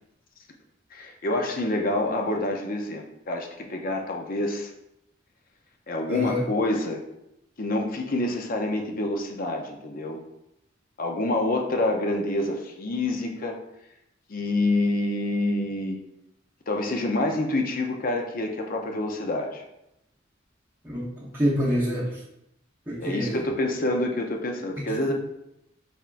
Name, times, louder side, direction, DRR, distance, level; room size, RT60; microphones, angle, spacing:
voice 1, 0.9-4.7 5.9-7.0 7.6-10.2 11.0-13.6 14.3-16.0 16.7-19.6 23.0-25.1, left 2 dB, 45° left, 2 dB, 0.6 m, -27 dB
voice 2, 6.1-6.4 20.8-22.2 22.9-23.4 24.8-24.9, equal, 10° right, -9 dB, 0.8 m, -27 dB
5.6 x 3.5 x 2.5 m, 0.85 s
head